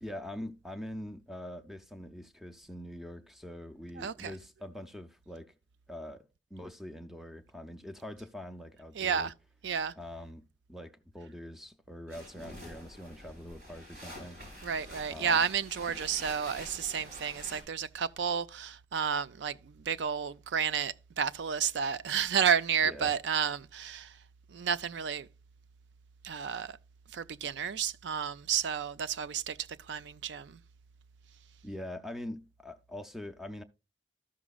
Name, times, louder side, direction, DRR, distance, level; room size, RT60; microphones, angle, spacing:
voice 1, 0.0-5.5 5.9-6.2 6.5-9.3 10.0-10.4 10.7-14.4 15.1-15.4 22.8-23.2 31.6-33.6, left 1 dB, ahead, 0.5 m, -43 dB
voice 2, 4.0-4.3 9.0-9.3 9.6-9.9 14.6-24.1 24.5-25.3 26.2-26.8 27.1-29.6 29.9-30.6, right 7 dB, 85° right, 0.4 m, -31 dB
sound 1, 12.1-17.6, equal, 60° right, 4.0 m, -47 dB
13.5 x 6.1 x 2.3 m
head